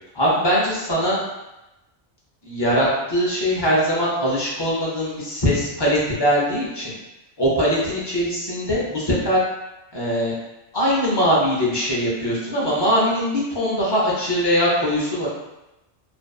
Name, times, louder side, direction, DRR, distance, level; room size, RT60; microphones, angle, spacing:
voice 1, 0.1-1.2 2.4-6.9 7.4-9.4 9.9-10.3 10.7-15.3, equal, 30° left, -6 dB, 0.5 m, -21 dB
2.5 x 2.3 x 2.3 m, 0.95 s
omnidirectional pair, 1.2 m